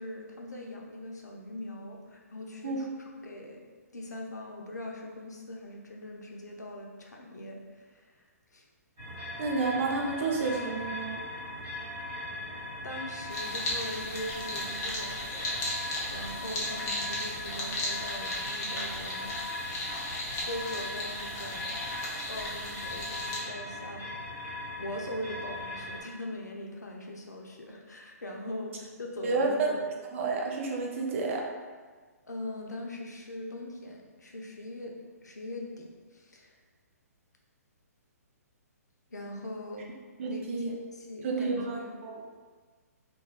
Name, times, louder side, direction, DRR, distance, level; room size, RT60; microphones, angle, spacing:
voice 1, 0.0-2.9 3.2-3.6 3.9-8.3 8.5-8.7 12.8-20.0 20.4-21.8 22.3-24.1 24.7-29.8 32.2-36.5 39.1-39.9 40.2-40.5 41.0-41.9, left 1 dB, 90° left, 0 dB, 0.5 m, -41 dB
sound 1, 9.0-26.0, left 1 dB, 30° right, 1.5 m, -39 dB
voice 2, 9.4-11.2 29.2-29.7 30.0-31.4 40.2-40.7 41.2-42.2, right 3 dB, 50° right, 0 dB, 0.5 m, -30 dB
sound 2, 13.3-23.4, left 1 dB, 30° left, 0.6 m, -36 dB
3.0 x 2.2 x 2.3 m, 1.5 s
figure-of-eight pair, 130°, 9 cm